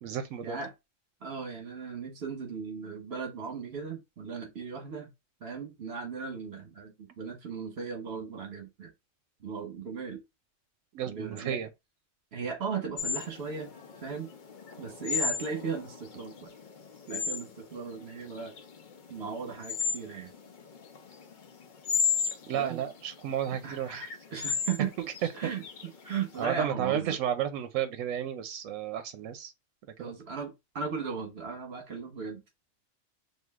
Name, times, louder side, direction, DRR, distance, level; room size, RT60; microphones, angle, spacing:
voice 1, 0.0-0.6 10.9-11.7 22.5-24.1 25.0-25.1 25.4-25.5 26.4-29.5 30.0-30.1, right 9 dB, 85° right, 0.9 m, -32 dB
voice 2, 1.2-5.1 5.4-8.9 9.4-10.2 11.1-11.6 12.3-13.7 14.0-14.3 14.8-16.5 17.1-18.5 19.1-20.3 22.5-22.8 23.6-24.9 25.2-25.6 26.0-27.2 30.0-32.4, right 6 dB, 55° right, 1.4 m, -37 dB
sound 1, 13.0-26.4, left 6 dB, 50° left, 0.7 m, -34 dB
6.2 x 2.6 x 2.4 m
omnidirectional pair, 1.3 m